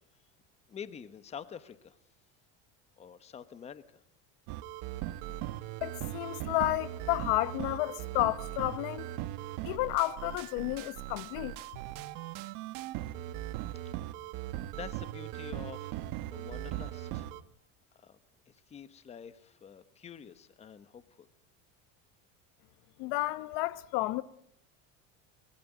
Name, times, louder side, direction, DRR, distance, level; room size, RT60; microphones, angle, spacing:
voice 1, 0.7-2.0 3.0-4.0 14.7-17.3 17.9-18.2 18.7-21.3, left 7 dB, 20° left, 1.1 m, -47 dB
sound 1, 4.5-17.4, right 14 dB, 60° right, 1.4 m, -39 dB
voice 2, 5.8-9.1 9.6-11.5 23.0-24.2, left 17 dB, 65° left, 1.0 m, -31 dB
25.0 x 21.5 x 9.5 m
cardioid pair, 175°, 35 cm